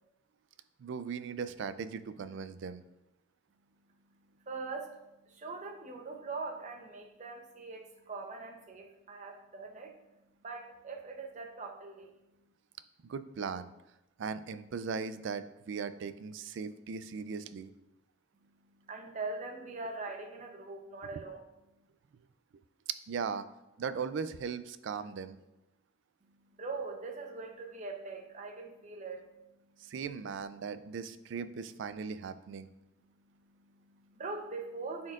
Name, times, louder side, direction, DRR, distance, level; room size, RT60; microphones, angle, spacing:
voice 1, 0.8-2.8 13.0-13.7 14.2-17.7 21.1-21.2 22.9-23.5 23.8-25.4 29.8-32.7, right 6 dB, 65° right, 13 dB, 0.3 m, -38 dB
voice 2, 4.1-10.0 10.4-12.1 18.4-21.4 26.2-29.9 33.0-35.1, right 3 dB, 40° right, 3 dB, 0.8 m, -43 dB
9.5 x 4.4 x 2.5 m, 0.94 s
head